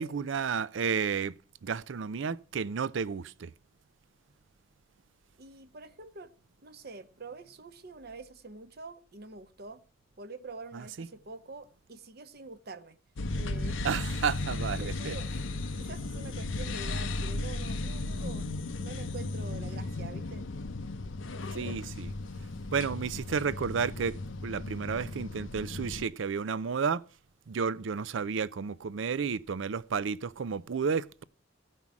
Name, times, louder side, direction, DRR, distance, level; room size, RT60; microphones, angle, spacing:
voice 1, 0.0-1.3 1.6-3.5 11.0-11.1 13.8-15.1 21.5-22.1 22.7-27.0 27.5-31.2, right 6 dB, 75° right, 0.5 m, -32 dB
voice 2, 5.4-6.3 6.6-9.8 10.2-13.0 13.4-14.0 14.6-15.3 15.7-20.4, right 3 dB, 55° right, 0.9 m, -46 dB
sound 1, 13.2-26.0, left 2 dB, 75° left, 0.7 m, -35 dB
15.5 x 5.5 x 5.9 m
head